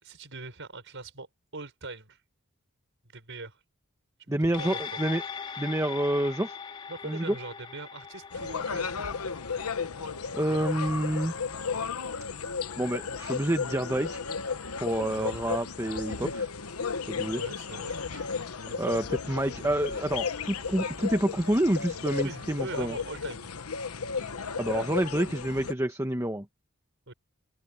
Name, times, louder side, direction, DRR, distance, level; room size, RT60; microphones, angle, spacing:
voice 1, 0.0-1.3 1.5-2.2 3.1-3.6 4.3-5.0 6.9-9.9 15.1-15.3 17.3-18.3 18.7-18.8 22.2-23.5 27.1-27.2, right 3 dB, 60° right, 6.3 m, -42 dB
voice 2, 4.3-5.2 5.6-6.6 7.0-7.4 10.3-11.3 12.8-14.2 14.8-16.5 17.0-17.4 18.7-23.0 24.6-26.4, right 1 dB, 15° right, 1.3 m, -28 dB
sound 1, 4.5-13.2 13.6-13.7, left 6 dB, 25° left, 2.5 m, -42 dB
sound 2, 8.3-25.7, left 5 dB, 85° left, 1.1 m, -34 dB
head